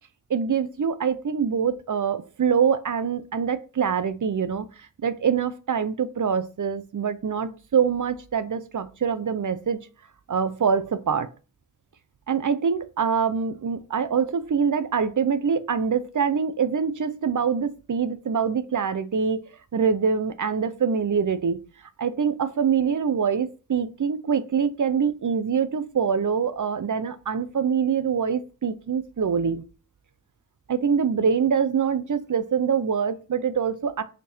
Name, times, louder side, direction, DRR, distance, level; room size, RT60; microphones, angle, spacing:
voice 1, 0.3-4.7 5.0-9.8 10.3-11.3 12.3-19.4 19.7-21.6 22.0-29.6 30.7-34.0, right 6 dB, 55° right, 0.7 m, -24 dB
5.6 x 4.5 x 4.3 m
wide cardioid pair, 100°, 36 cm